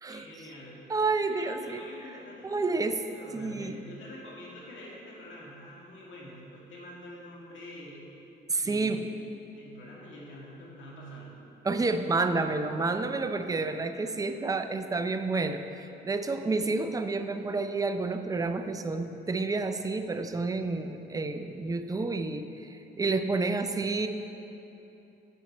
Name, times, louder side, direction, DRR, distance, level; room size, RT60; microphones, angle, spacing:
voice 1, 0.1-0.8 1.3-2.8 3.1-8.0 8.6-9.1 9.6-11.3 16.4-16.7, equal, 75° left, -4 dB, 1.9 m, -46 dB
voice 2, 0.9-1.8 2.4-3.0 3.3-3.8 8.5-9.0 11.6-24.1, right 3 dB, 20° right, 8 dB, 0.4 m, -30 dB
7.8 x 6.8 x 4.2 m, 3.0 s
cardioid pair, 90°, 20 cm